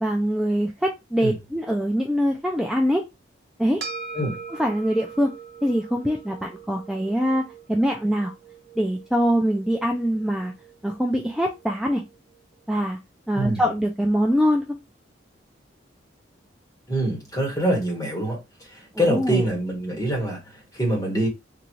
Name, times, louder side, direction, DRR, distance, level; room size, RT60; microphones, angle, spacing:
voice 1, 0.0-3.0 3.6-3.8 4.6-5.3 5.6-7.4 7.7-8.3 8.8-10.5 10.8-12.0 12.7-13.0 13.3-14.8 18.9-19.4, equal, ahead, 0.3 m, -23 dB
sound 1, 3.8-12.4, right 5 dB, 60° right, 0.8 m, -42 dB
voice 2, 16.9-21.3, right 1 dB, 20° left, 1.3 m, -25 dB
3.9 x 2.3 x 3.0 m
head